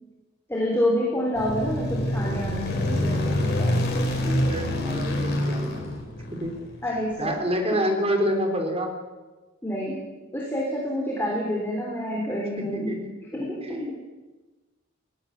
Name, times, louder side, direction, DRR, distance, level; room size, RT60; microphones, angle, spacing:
voice 1, 0.5-3.7 6.8-7.8 9.6-10.0 10.3-13.0 13.3-13.9, equal, 10° left, -2 dB, 3.5 m, -28 dB
sound 1, 1.3-6.8, left 1 dB, 55° left, 5.1 m, -26 dB
voice 2, 4.2-5.9 6.3-6.5 7.2-8.9 12.6-13.1 13.6-13.9, equal, 30° right, 4 dB, 4.1 m, -27 dB
20.0 x 18.5 x 7.3 m, 1.2 s
head